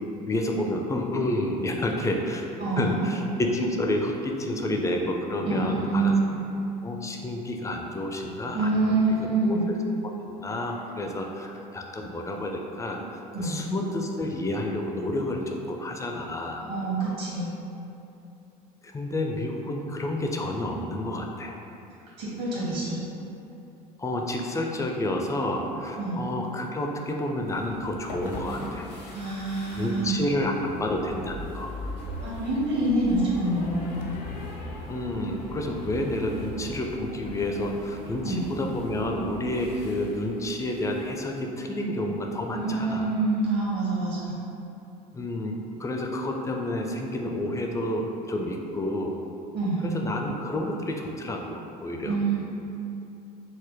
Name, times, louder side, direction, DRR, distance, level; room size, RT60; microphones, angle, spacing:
voice 1, 0.3-2.5 2.8-6.1 6.8-8.9 9.4-9.8 10.3-16.7 18.8-21.5 24.0-28.9 29.8-31.7 34.9-43.1 45.1-49.2 49.8-52.2, left 1 dB, 15° left, 1 dB, 0.3 m, -30 dB
voice 2, 2.6-3.1 5.4-6.4 8.5-9.7 13.3-13.6 16.7-17.5 22.2-23.0 25.9-26.2 29.1-30.1 32.2-33.8 38.2-38.4 42.6-44.3 49.5-49.9 52.0-52.4, right 2 dB, 55° right, -8 dB, 1.5 m, -26 dB
sound 1, 27.4-41.3, left 1 dB, 75° left, 0.6 m, -40 dB
4.0 x 2.1 x 3.1 m, 2.8 s
hypercardioid pair, 65°, 21 cm